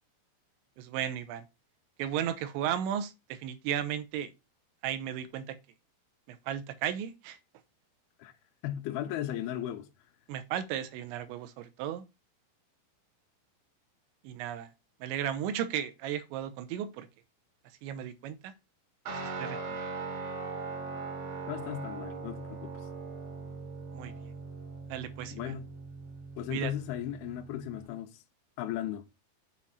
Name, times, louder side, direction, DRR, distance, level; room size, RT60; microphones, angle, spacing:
voice 1, 0.8-1.4 2.0-4.3 4.8-5.6 6.3-7.4 10.3-12.0 14.2-14.7 15.0-17.1 17.8-18.5 19.4-19.9 23.9-24.1 24.9-25.5 26.5-26.7, right 10 dB, 80° right, 3.1 m, -35 dB
voice 2, 8.6-9.9 21.5-22.9 25.3-25.7 26.4-28.2 28.6-29.1, left 12 dB, 80° left, 2.3 m, -36 dB
Guitar, 19.1-27.9, right 4 dB, 65° right, 3.9 m, -40 dB
7.5 x 4.0 x 4.0 m
omnidirectional pair, 5.3 m